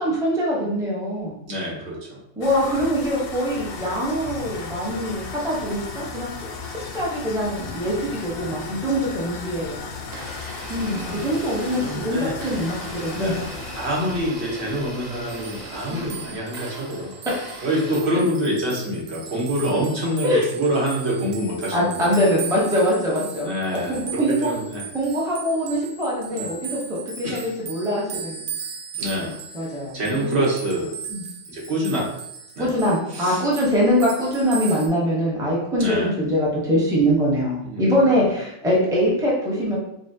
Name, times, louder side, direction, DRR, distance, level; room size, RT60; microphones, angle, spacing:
voice 1, 0.0-1.3 2.4-6.3 6.9-9.8 10.7-13.4 15.9-16.1 20.2-20.4 21.7-24.5 24.9-28.5 29.5-30.4 31.1-31.2 32.6-39.8, equal, 5° right, -5 dB, 0.7 m, -23 dB
voice 2, 1.5-2.2 10.7-11.2 11.8-12.3 13.2-13.4 13.8-17.1 17.6-22.4 23.4-24.8 26.3-26.5 27.2-27.4 29.0-29.3 29.9-30.9 31.5-32.1 32.6-32.7 33.1-33.4 35.8-36.1 37.6-37.9, equal, 65° right, -3 dB, 1.3 m, -26 dB
Woman vomiting into toilet, 2.4-16.4, left 4 dB, 60° left, 0.7 m, -36 dB
Domestic sounds home sounds, 10.0-18.0, right 2 dB, 45° right, 0.8 m, -39 dB
sound 1, 15.3-34.9, right 6 dB, 80° right, 0.9 m, -38 dB
5.5 x 2.1 x 2.7 m, 0.80 s
omnidirectional pair, 1.2 m